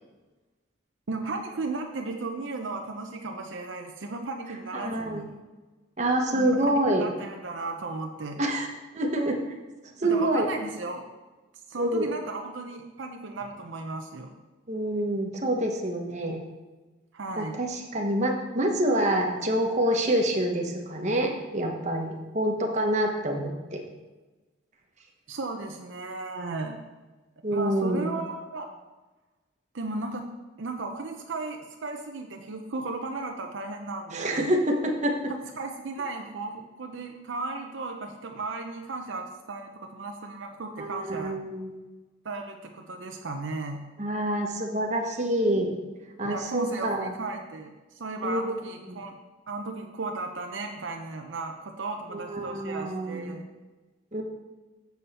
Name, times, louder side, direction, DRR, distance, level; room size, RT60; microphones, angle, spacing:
voice 1, 1.1-5.3 6.3-8.4 10.0-11.0 11.7-14.3 17.1-17.6 25.3-26.8 27.5-28.7 29.7-30.3 30.6-34.5 35.6-41.4 42.2-43.8 46.2-49.2 49.5-53.5, right 3 dB, 75° right, 3 dB, 0.6 m, -35 dB
voice 2, 4.7-5.2 6.0-7.0 8.4-8.7 8.9-9.4 10.0-10.5 11.8-12.1 14.7-16.4 17.4-23.8 27.4-28.1 34.1-35.2 40.8-41.7 44.0-45.7 46.2-47.1 48.2-48.6 48.9-49.0 52.1-53.4 54.1-54.2, right 1 dB, 35° right, 1 dB, 1.1 m, -27 dB
7.1 x 7.0 x 4.2 m, 1.2 s
head